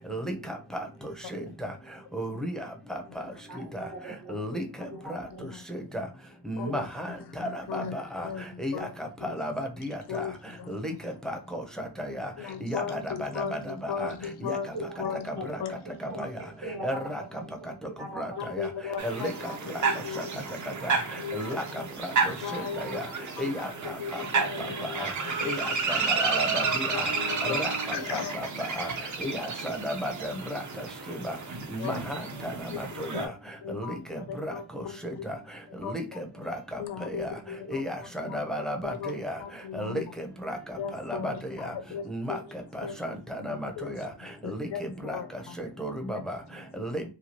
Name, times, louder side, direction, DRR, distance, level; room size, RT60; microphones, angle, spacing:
voice 1, 2.1-2.6 4.3-4.6 5.1-5.2 5.7-6.0 6.5-7.1 7.4-8.3 8.6-10.0 10.7-11.6 12.2-12.3 12.6-13.4 14.0-14.1 14.4-14.6 16.2-16.3 16.8-17.2 18.2-18.3 18.6-18.7 19.0-19.3 20.8-21.0 21.3-21.6 22.5-22.6 22.9-23.0 23.4-23.7 24.4-24.5 25.0-25.1 25.4-26.8 27.4-27.7 28.1-28.5 28.8-28.9 29.2-30.6 31.1-31.3 31.7-32.0 32.4-32.5 33.0-33.3 33.7-34.5 35.0-35.1 35.8-36.8 37.7-39.4 39.7-40.6 41.1-41.3 41.6-41.7 42.1-42.4 42.8-43.1 43.4-44.0 44.4-44.7 45.1-45.2 45.6-46.4 46.8-47.0, equal, ahead, 0.5 m, -33 dB
voice 2, 3.5-4.6 4.9-5.4 6.6-6.8 14.7-15.4 16.1-18.2, right 2 dB, 70° right, 1.1 m, -41 dB
voice 3, 5.3-5.6 6.6-6.9 7.3-8.9 9.2-9.4 10.1-11.0 12.4-15.8 16.7-16.9 18.4-20.3 21.2-21.8 22.4-25.8 26.6-27.6 27.9-28.4 31.8-32.0 32.7-33.3 33.6-35.3 35.8-35.9 36.8-37.9 38.2-38.4 38.8-39.1 39.4-40.0 40.8-42.4 42.8-43.0 43.5-45.6 46.1-46.2 46.5-46.9, left 7 dB, 75° left, 0.6 m, -38 dB
sound 1, 19.0-33.3, right 5 dB, 45° right, 0.7 m, -31 dB
2.9 x 2.3 x 2.8 m
cardioid pair, 105°, 40 cm